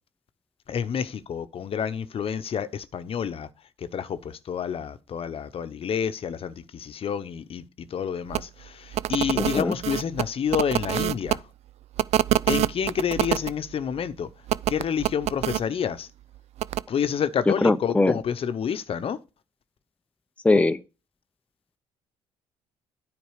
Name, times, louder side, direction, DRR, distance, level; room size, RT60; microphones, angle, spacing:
voice 1, 0.7-3.5 3.8-11.4 12.5-14.3 14.7-16.1 16.9-19.2, left 7 dB, 50° left, 0.9 m, -29 dB
sound 1, 8.3-8.4 8.9-11.4 12.0-13.5 14.5-15.6 16.6-16.8, right 13 dB, 60° right, 0.4 m, -25 dB
voice 2, 9.4-9.7 17.6-18.2 20.4-20.8, left 2 dB, 10° left, 0.6 m, -21 dB
9.4 x 5.1 x 4.9 m
supercardioid pair, 65°, 12 cm